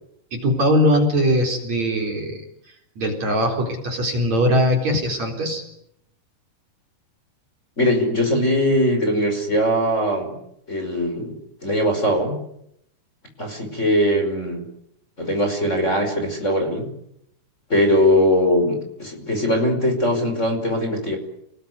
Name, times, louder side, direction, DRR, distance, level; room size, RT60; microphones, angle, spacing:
voice 1, 0.3-2.4 3.0-5.6, equal, 45° right, 2 dB, 5.1 m, -20 dB
voice 2, 7.8-10.4 10.7-12.4 13.4-14.7 15.2-16.9 17.7-21.2, left 1 dB, 15° left, 3 dB, 5.4 m, -21 dB
30.0 x 20.5 x 9.6 m, 0.76 s
omnidirectional pair, 4.5 m